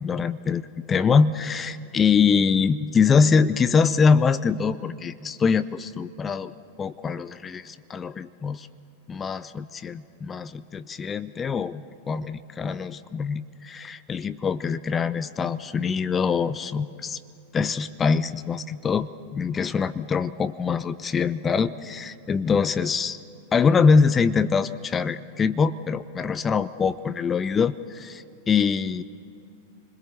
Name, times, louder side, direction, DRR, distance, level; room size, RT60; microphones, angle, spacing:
voice 1, 0.0-6.5 6.8-8.7 9.1-17.2 17.5-23.2 23.5-29.0, left 5 dB, 20° left, 14 dB, 0.5 m, -24 dB
28.0 x 21.0 x 6.9 m, 2.7 s
figure-of-eight pair, 90°, 0 cm